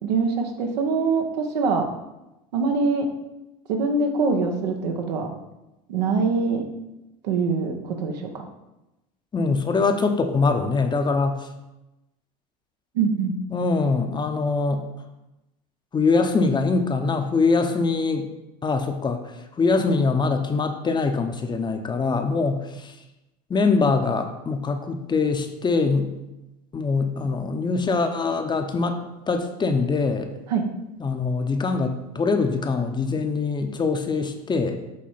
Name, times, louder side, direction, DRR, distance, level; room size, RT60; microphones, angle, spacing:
voice 1, 0.0-1.9 2.5-3.1 3.7-5.3 5.9-6.6 7.2-8.4 12.9-13.4 30.5-30.6, right 4 dB, 80° right, 4 dB, 1.2 m, -23 dB
voice 2, 9.3-11.5 13.5-14.9 15.9-18.3 18.6-23.0 23.5-26.1 26.7-29.0 29.3-30.3 31.0-34.8, left 4 dB, 20° left, 6 dB, 0.8 m, -23 dB
7.6 x 3.3 x 5.6 m, 0.95 s
hypercardioid pair, 95°, 21 cm